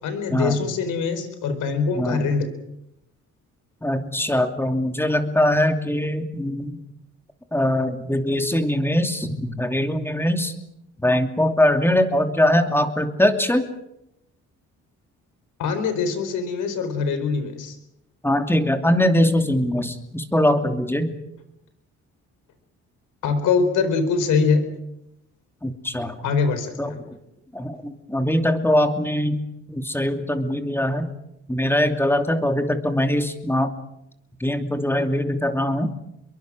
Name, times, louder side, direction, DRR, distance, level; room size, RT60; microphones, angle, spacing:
voice 1, 0.0-2.5 15.6-17.8 23.2-24.6 26.2-27.0, left 5 dB, 80° left, 9 dB, 4.4 m, -23 dB
voice 2, 1.9-2.3 3.8-6.8 7.5-10.5 11.0-13.7 18.2-21.2 25.6-26.2 26.8-27.2 27.5-29.4 29.7-31.1 31.5-33.7 34.4-36.0, left 1 dB, 5° left, 6 dB, 2.8 m, -22 dB
26.5 x 22.5 x 6.3 m, 0.83 s
cardioid pair, 90°, 30 cm